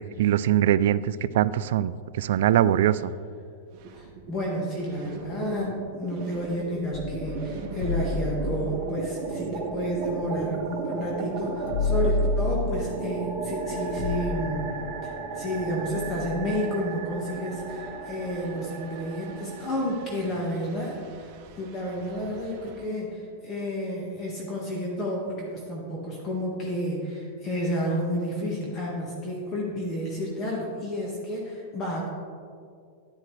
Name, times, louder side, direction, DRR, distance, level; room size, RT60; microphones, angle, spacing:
voice 1, 0.2-3.1, right 11 dB, 70° right, 16 dB, 0.3 m, -22 dB
sound 1, 3.7-4.5 4.8-22.9, right 4 dB, 45° right, 0.9 m, -36 dB
voice 2, 3.9-14.8 15.0-32.1, equal, 25° left, -3 dB, 1.6 m, -31 dB
sound 2, 6.9-10.8 11.1-11.2 11.4-16.6, left 2 dB, 60° left, 0.5 m, -31 dB
9.7 x 9.6 x 3.3 m, 2.3 s
hypercardioid pair, 135°, 0 cm